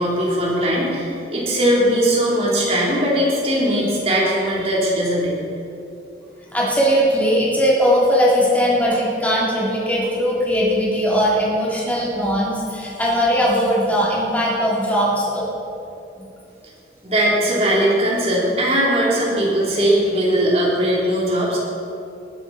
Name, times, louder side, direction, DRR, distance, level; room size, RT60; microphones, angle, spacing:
voice 1, 0.0-5.4 17.0-21.6, equal, 35° right, -6 dB, 3.8 m, -19 dB
voice 2, 6.5-15.5, equal, 10° left, -6 dB, 3.4 m, -19 dB
20.0 x 10.0 x 4.5 m, 2.7 s
head